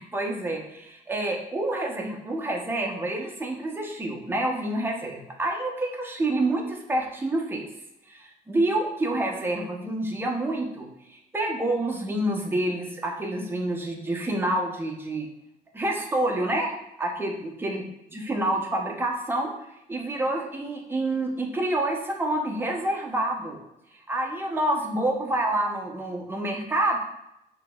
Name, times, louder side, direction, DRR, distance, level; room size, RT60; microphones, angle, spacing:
voice 1, 0.0-7.6 8.1-15.3 15.7-16.7 17.0-17.8 18.1-19.5 19.9-23.6 24.1-27.0, right 1 dB, 15° right, 0 dB, 0.7 m, -28 dB
5.7 x 2.8 x 2.3 m, 0.84 s
cardioid pair, 110°, 17 cm